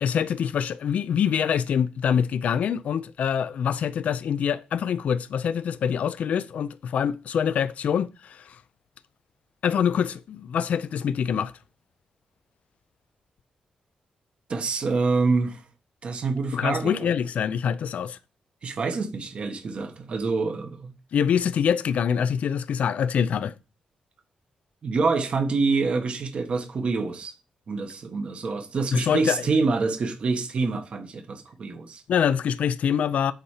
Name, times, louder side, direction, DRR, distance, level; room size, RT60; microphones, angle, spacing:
voice 1, 0.0-8.6 9.6-11.5 16.5-18.2 21.1-23.5 28.9-29.5 32.1-33.3, left 8 dB, 70° left, 0.5 m, -25 dB
voice 2, 14.5-15.6 16.0-17.1 18.6-20.9 24.8-27.3 27.7-32.0, right 4 dB, 50° right, 1.4 m, -26 dB
8.1 x 4.3 x 6.6 m
wide cardioid pair, 125°, 2 cm